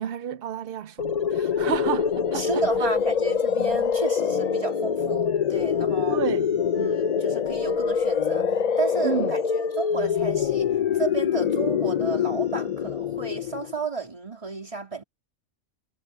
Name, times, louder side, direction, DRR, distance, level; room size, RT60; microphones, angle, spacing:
voice 1, 0.0-2.9 6.1-6.5 9.0-9.3, right 9 dB, 60° right, 0.6 m, -31 dB
sound 1, 1.0-13.8, left 7 dB, 60° left, 0.4 m, -25 dB
voice 2, 2.3-6.2 6.8-15.0, right 4 dB, 25° right, 3.1 m, -32 dB
omnidirectional pair, 1.4 m